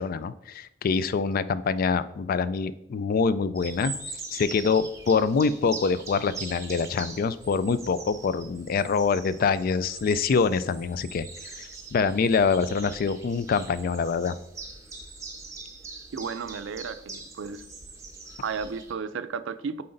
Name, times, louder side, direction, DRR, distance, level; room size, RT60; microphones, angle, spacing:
voice 1, 0.0-3.9 4.3-11.3 11.6-14.3, left 5 dB, 50° left, 15 dB, 0.3 m, -25 dB
sound 1, 3.5-18.9, right 3 dB, 15° right, 1.1 m, -42 dB
voice 2, 16.1-17.6 18.4-19.8, right 5 dB, 90° right, 13 dB, 0.4 m, -33 dB
7.7 x 4.3 x 3.8 m, 0.81 s
head